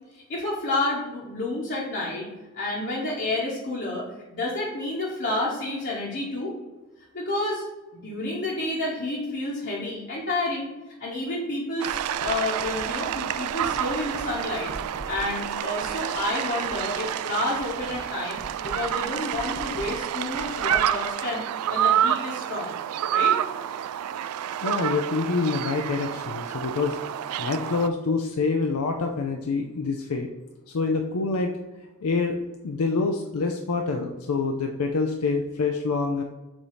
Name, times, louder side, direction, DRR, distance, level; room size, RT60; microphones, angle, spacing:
voice 1, 0.1-2.3 2.5-6.5 7.1-7.6 7.9-10.7 11.0-14.7 15.1-21.4 21.7-22.7 23.1-23.4, left 2 dB, 50° left, -6 dB, 1.1 m, -30 dB
sound 1, 11.8-27.9, right 10 dB, 85° right, 0.3 m, -28 dB
Writing, 11.9-17.1 17.4-21.1, right 1 dB, 60° right, 0.8 m, -44 dB
voice 2, 24.6-27.0 27.4-30.3 30.7-31.5 32.0-32.4 32.6-36.2, left 4 dB, 75° left, 3 dB, 0.5 m, -26 dB
7.1 x 2.7 x 4.9 m, 1.1 s
head